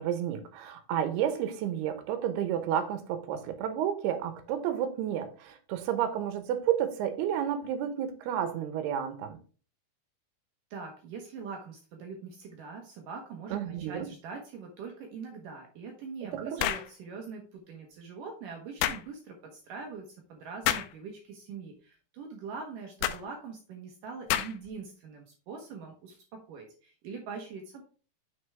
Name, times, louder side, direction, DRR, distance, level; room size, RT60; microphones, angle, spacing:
voice 1, 0.0-9.4 13.5-14.1 16.3-16.7, right 9 dB, 85° right, 3.0 m, -31 dB
voice 2, 10.7-27.8, right 5 dB, 65° right, 2.4 m, -43 dB
sound 1, 16.6-16.9 18.8-19.1 20.7-20.9 23.0-23.2 24.3-24.7, left 12 dB, 90° left, 2.6 m, -29 dB
6.6 x 6.5 x 3.4 m
omnidirectional pair, 4.6 m